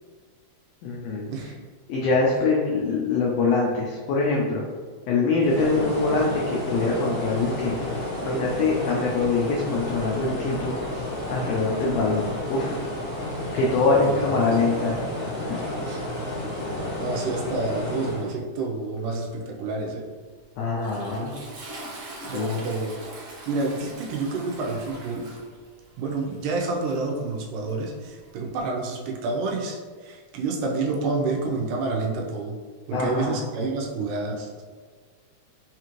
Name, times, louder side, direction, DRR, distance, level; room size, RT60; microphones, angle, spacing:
voice 1, 0.8-1.3 1.9-4.6 5.1-7.8 8.2-10.7 11.3-12.7 13.5-14.9 15.2-15.6 16.7-16.8 20.6-21.3 22.3-22.6 32.9-33.4, left 3 dB, 90° left, -3 dB, 1.4 m, -24 dB
sound 1, 5.4-18.3, left 1 dB, 55° left, 0.9 m, -31 dB
voice 2, 13.8-14.6 15.8-16.1 16.9-20.0 22.2-22.9 23.5-25.3 26.0-32.6 32.9-34.5, right 3 dB, 90° right, -1 dB, 2.2 m, -29 dB
Toilet flush, 20.3-28.6, right 2 dB, 65° right, 1.4 m, -43 dB
5.2 x 2.5 x 3.0 m, 1.5 s
omnidirectional pair, 3.6 m